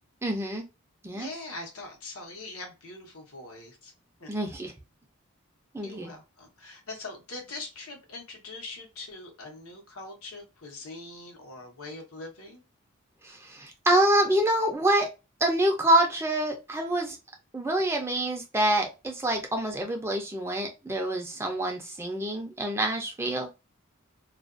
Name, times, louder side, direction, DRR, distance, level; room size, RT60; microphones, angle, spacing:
voice 1, 0.2-0.6 1.0-1.3 4.3-4.7 5.7-6.1 13.2-15.1 15.4-17.2 17.5-23.5, right 1 dB, 10° right, 3 dB, 0.4 m, -26 dB
voice 2, 1.1-3.9 4.2-4.3 5.8-12.6, left 2 dB, 80° left, 1 dB, 0.9 m, -42 dB
2.4 x 2.3 x 2.4 m, 0.27 s
head